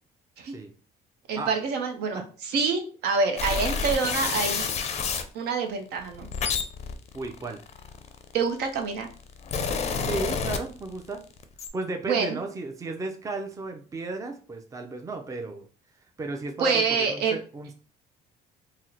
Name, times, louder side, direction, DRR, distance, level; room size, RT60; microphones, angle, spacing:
voice 1, 1.3-4.7 5.3-6.3 8.3-9.1 12.1-12.4 16.6-17.4, right 4 dB, 75° right, 5 dB, 0.7 m, -26 dB
sound 1, 3.4-5.3 6.0-8.4 9.1-11.1 11.4-11.7, left 5 dB, 40° left, 0.4 m, -29 dB
voice 2, 7.1-7.6 10.0-11.2 11.7-15.7 16.2-17.7, right 3 dB, 20° right, 4 dB, 0.5 m, -34 dB
2.8 x 2.1 x 3.8 m, 0.39 s
cardioid pair, 110°, 17 cm